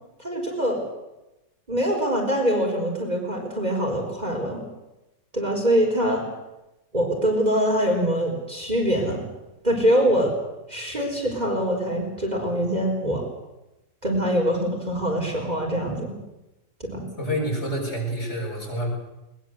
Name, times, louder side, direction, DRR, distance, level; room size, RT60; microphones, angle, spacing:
voice 1, 0.2-0.8 1.7-4.6 5.3-6.2 6.9-9.2 9.6-10.3 10.7-13.2 14.0-16.1 16.8-17.0, equal, 25° right, -1 dB, 4.5 m, -24 dB
voice 2, 17.2-18.9, equal, 40° left, -2 dB, 7.2 m, -28 dB
21.5 x 20.5 x 8.0 m, 0.96 s
omnidirectional pair, 1.8 m